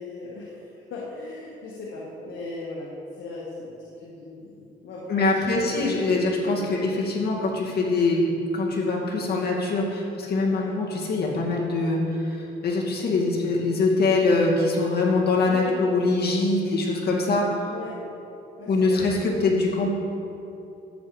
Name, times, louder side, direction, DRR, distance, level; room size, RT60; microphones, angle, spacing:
voice 1, 0.0-5.9 10.5-10.7 15.4-15.8 17.6-18.0 18.6-19.0, left 3 dB, 75° left, -5 dB, 1.7 m, -38 dB
voice 2, 5.1-8.3 8.5-17.5 18.7-19.9, left 3 dB, 55° left, -3 dB, 2.4 m, -23 dB
14.0 x 9.1 x 3.4 m, 2.8 s
cardioid pair, 90°, 20 cm